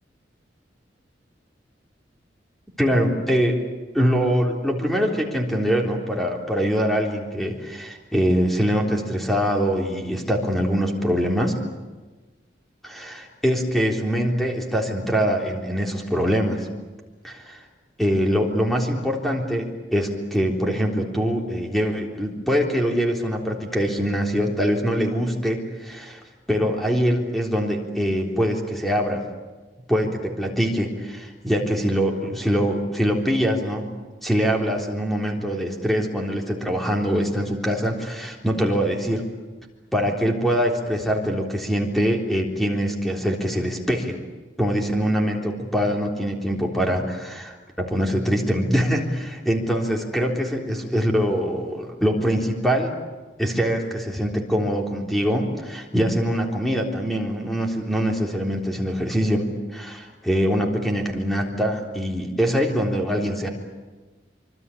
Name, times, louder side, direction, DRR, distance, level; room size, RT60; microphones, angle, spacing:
voice 1, 2.8-3.6 3.9-11.5 12.8-16.6 17.2-17.6 18.0-26.2 26.5-29.2 29.9-33.9 34.2-39.2 39.9-44.2 44.6-52.9 53.4-63.5, equal, ahead, 0 dB, 3.7 m, -23 dB
25.5 x 24.5 x 8.5 m, 1.2 s
head